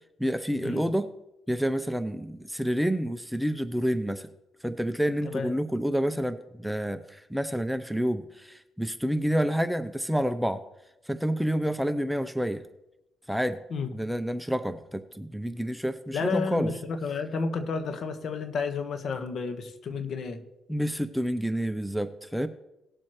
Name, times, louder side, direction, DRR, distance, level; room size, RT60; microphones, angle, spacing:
voice 1, 0.2-1.1 1.5-4.3 4.6-10.6 11.1-12.6 13.3-13.6 13.9-16.7 20.7-22.5, equal, ahead, 10 dB, 0.6 m, -28 dB
voice 2, 16.1-20.4, left 4 dB, 60° left, 8 dB, 1.3 m, -31 dB
18.5 x 7.6 x 3.1 m, 0.91 s
cardioid pair, 90°, 0 cm